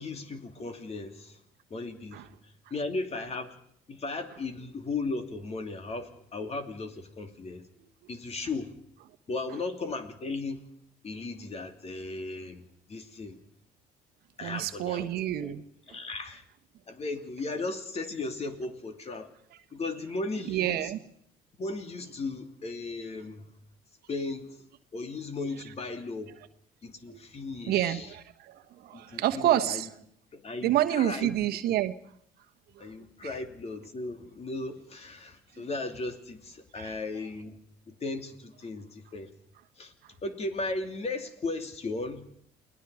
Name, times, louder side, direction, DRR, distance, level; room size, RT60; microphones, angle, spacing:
voice 1, 0.0-1.4 1.7-2.2 2.7-3.5 3.9-7.7 8.1-8.7 9.3-10.6 11.0-13.4 14.4-15.1 15.4-15.5 15.9-16.4 16.9-19.3 19.7-20.9 21.6-23.5 24.1-24.6 24.9-26.3 26.8-28.1 28.9-29.8 30.3-31.3 32.8-37.6 37.9-39.3 39.8-39.9 40.2-42.3, left 3 dB, 40° left, 7 dB, 2.9 m, -36 dB
voice 2, 14.4-15.6 20.5-21.0 27.1-27.2 27.7-29.9 30.6-31.9 32.8-32.9 36.7-37.0, right 12 dB, 70° right, 10 dB, 1.2 m, -28 dB
29.0 x 20.0 x 4.9 m, 0.66 s
supercardioid pair, 75°, 17 cm